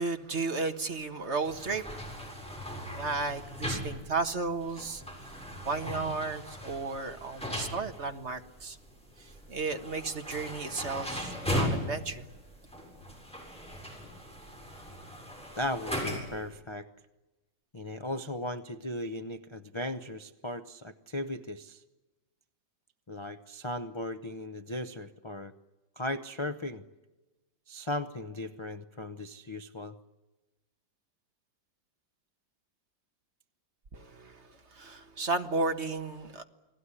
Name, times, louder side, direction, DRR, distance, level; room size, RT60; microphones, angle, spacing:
voice 1, 0.0-2.2 2.9-5.0 5.6-8.8 9.2-12.3 33.9-36.4, right 3 dB, 40° right, 1.6 m, -34 dB
sound 1, 1.4-16.5, left 1 dB, 5° left, 7.4 m, -38 dB
voice 2, 15.6-16.9 17.7-21.8 23.1-25.5 26.0-26.8 27.7-30.0, left 1 dB, 35° left, 0.4 m, -37 dB
29.5 x 19.5 x 9.9 m
omnidirectional pair, 1.9 m